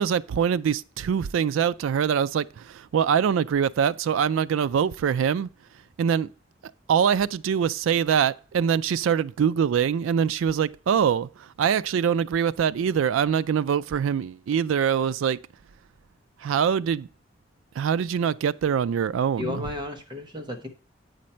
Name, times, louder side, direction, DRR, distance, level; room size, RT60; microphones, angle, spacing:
voice 1, 0.0-5.5 6.0-6.3 6.9-11.3 11.6-15.4 16.4-17.1 17.8-19.6, right 7 dB, 85° right, 0.3 m, -24 dB
voice 2, 19.4-20.7, left 2 dB, 25° right, 1.1 m, -33 dB
8.5 x 5.2 x 4.3 m
head